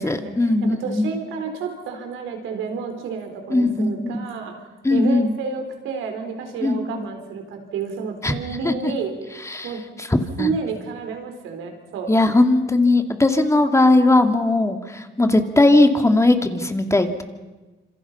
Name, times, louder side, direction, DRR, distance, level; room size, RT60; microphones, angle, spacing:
voice 1, 0.0-1.1 3.5-4.1 4.8-5.3 6.6-7.1 8.2-8.3 8.6-8.9 9.4-9.7 10.0-10.5 12.1-17.2, left 2 dB, 15° left, 6 dB, 2.4 m, -18 dB
voice 2, 0.6-4.6 4.9-9.1 9.6-9.8 10.4-12.1, right 5 dB, 90° right, 5 dB, 4.2 m, -30 dB
27.0 x 26.0 x 5.8 m, 1.2 s
cardioid pair, 90°, 20 cm